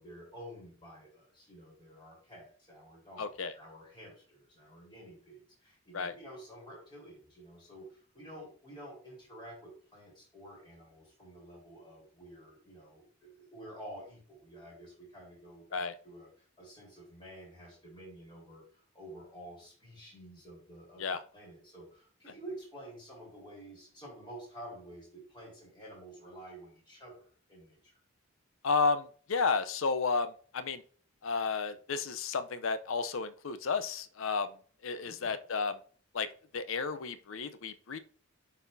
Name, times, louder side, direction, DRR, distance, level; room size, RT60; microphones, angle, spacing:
voice 1, 0.0-18.6 18.9-21.0 21.3-27.8 35.0-35.4, right 1 dB, 25° left, -5 dB, 3.7 m, -50 dB
voice 2, 3.2-3.5 5.9-6.1 15.7-15.9 21.0-21.2 28.6-30.8 31.2-34.5 34.8-35.7 36.1-36.3 36.5-38.0, left 4 dB, 75° left, 12 dB, 0.6 m, -32 dB
11.0 x 4.1 x 2.6 m, 0.43 s
head